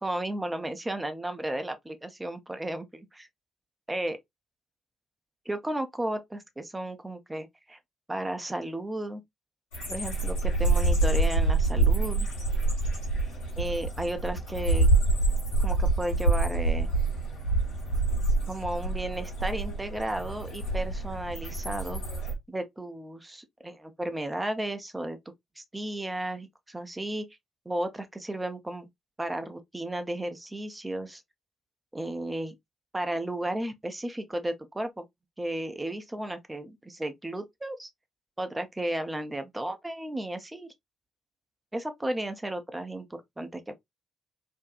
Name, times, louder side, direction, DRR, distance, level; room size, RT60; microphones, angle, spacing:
voice 1, 0.0-3.3 3.9-4.2 5.5-7.8 8.1-9.2 9.9-12.3 13.6-14.9 15.6-16.9 18.5-22.0 22.5-25.2 25.6-27.3 27.7-28.9 29.2-31.2 31.9-32.5 32.9-35.0 35.4-37.9 38.4-40.7 41.7-43.8, right 1 dB, 15° right, 0.6 m, -34 dB
sound 1, 9.7-22.3, right 2 dB, 80° left, 1.1 m, -26 dB
2.6 x 2.2 x 2.4 m
figure-of-eight pair, 40°, 0 cm